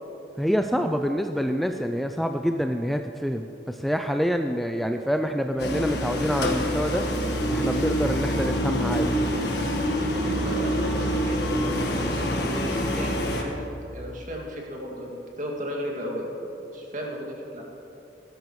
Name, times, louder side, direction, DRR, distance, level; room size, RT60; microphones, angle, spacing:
voice 1, 0.4-7.0 7.5-9.2, equal, ahead, 6 dB, 0.3 m, -26 dB
sound 1, 5.6-13.4, equal, 65° left, 1.5 m, -26 dB
voice 2, 10.4-12.3 12.6-13.5 13.9-16.5 16.7-17.6, equal, 45° right, -2 dB, 2.2 m, -35 dB
17.0 x 13.0 x 3.1 m, 3.0 s
head